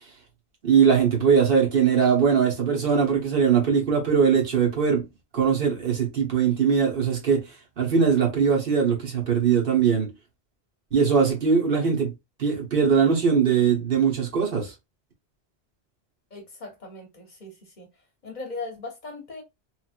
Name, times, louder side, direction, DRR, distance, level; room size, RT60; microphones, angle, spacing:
voice 1, 0.6-5.0 5.3-10.1 10.9-12.1 12.4-14.7, right 6 dB, 55° right, 1.1 m, -21 dB
voice 2, 16.3-17.9 18.2-19.4, left 3 dB, 45° left, 0.8 m, -38 dB
3.1 x 2.5 x 2.4 m
omnidirectional pair, 1.1 m